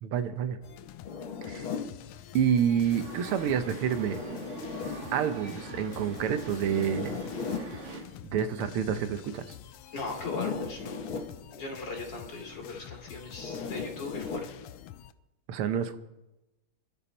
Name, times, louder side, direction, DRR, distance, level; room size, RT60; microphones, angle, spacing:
voice 1, 0.0-0.6 1.4-1.7 2.3-4.2 5.1-7.2 8.2-9.6 15.5-16.0, right 8 dB, 85° right, 10 dB, 1.8 m, -28 dB
sound 1, 0.6-15.1, left 12 dB, 90° left, 1.6 m, -48 dB
Zipper (clothing), 1.0-1.9 3.9-5.0 6.6-7.7 10.1-11.3 13.3-14.5, left 5 dB, 70° left, 2.2 m, -36 dB
sound 2, 2.9-8.0, right 3 dB, 65° right, 3.1 m, -42 dB
voice 2, 9.9-11.1 11.5-14.5, left 3 dB, 55° left, 1 dB, 3.6 m, -38 dB
25.5 x 11.5 x 4.2 m, 1.0 s
omnidirectional pair, 2.4 m